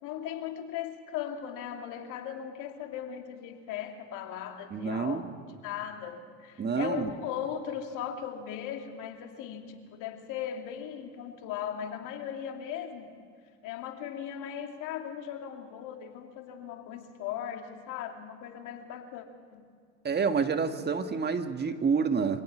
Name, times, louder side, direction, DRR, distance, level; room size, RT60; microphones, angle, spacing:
voice 1, 0.0-5.2 5.6-13.2 13.6-19.2 19.5-19.6, left 9 dB, 65° left, 4 dB, 2.7 m, -38 dB
voice 2, 4.7-5.2 6.6-7.1 20.0-22.4, right 5 dB, 30° right, 7 dB, 1.7 m, -28 dB
26.0 x 17.5 x 6.2 m, 2.2 s
hypercardioid pair, 85°, 33 cm